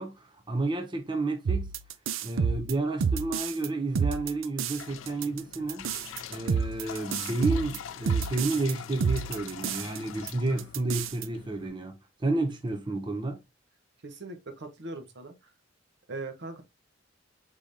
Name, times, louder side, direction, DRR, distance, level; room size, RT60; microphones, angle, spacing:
voice 1, 0.0-1.7 2.2-5.9 6.3-13.4, right 2 dB, 25° right, 0.5 m, -31 dB
sound 1, 1.5-3.7 4.0-4.8 5.1-8.7 9.0-10.0 10.3-10.4 10.6-11.3, right 6 dB, 90° right, 0.5 m, -29 dB
sound 2, 4.7-11.7, left 8 dB, 85° left, 0.5 m, -44 dB
voice 2, 14.0-15.3 16.1-16.6, right 2 dB, 60° right, 0.9 m, -40 dB
4.9 x 3.7 x 2.6 m
head